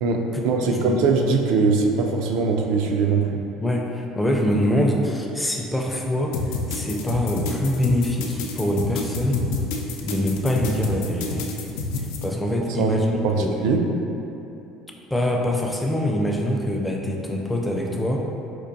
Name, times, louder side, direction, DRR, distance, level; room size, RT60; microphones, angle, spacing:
voice 1, 0.0-3.4 12.7-13.0 13.2-13.8, right 4 dB, 75° right, 3 dB, 0.3 m, -21 dB
voice 2, 0.6-0.9 3.6-6.4 6.7-9.4 10.0-11.5 12.2-13.6 15.1-18.2, left 1 dB, 5° left, 0 dB, 0.4 m, -24 dB
sound 1, 6.3-12.2, left 4 dB, 85° left, 0.4 m, -29 dB
4.4 x 2.5 x 2.6 m, 2.9 s
supercardioid pair, 115°, 0 cm